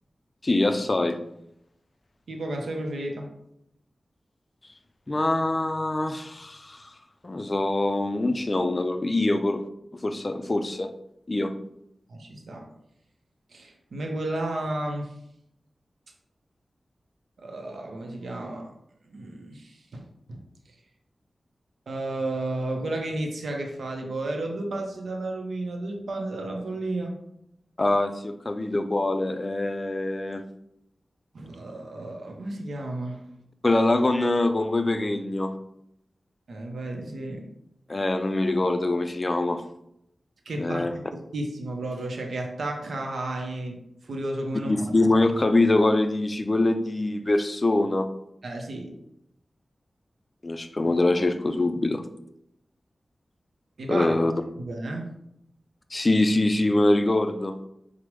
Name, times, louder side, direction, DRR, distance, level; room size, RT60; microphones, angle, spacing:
voice 1, 0.4-1.2 5.1-6.9 7.2-9.6 9.9-11.0 11.3-11.6 27.8-30.4 33.6-35.6 37.9-39.6 40.6-40.9 44.7-48.1 50.4-52.1 53.9-54.3 55.9-57.6, left 2 dB, 35° left, 8 dB, 0.3 m, -24 dB
voice 2, 2.3-3.3 12.1-12.7 13.5-15.1 17.4-18.7 19.1-20.4 21.9-27.2 31.3-33.3 36.5-37.5 40.5-44.9 48.4-48.9 53.8-54.2 54.6-55.2, right 2 dB, 85° right, 2 dB, 0.5 m, -33 dB
4.7 x 2.0 x 3.0 m, 0.77 s
wide cardioid pair, 70°, 0 cm